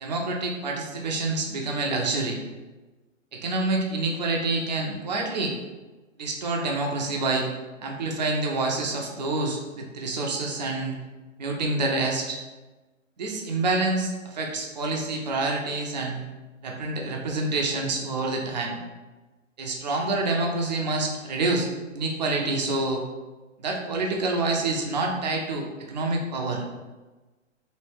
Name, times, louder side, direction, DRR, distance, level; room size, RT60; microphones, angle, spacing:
voice 1, 0.0-2.4 3.3-5.5 6.2-7.5 7.8-11.0 11.4-12.4 13.2-16.2 16.6-18.8 19.6-21.7 21.9-23.0 23.6-26.6, right 2 dB, 35° right, 0 dB, 0.5 m, -27 dB
3.1 x 2.6 x 3.3 m, 1.2 s
hypercardioid pair, 145°, 40 cm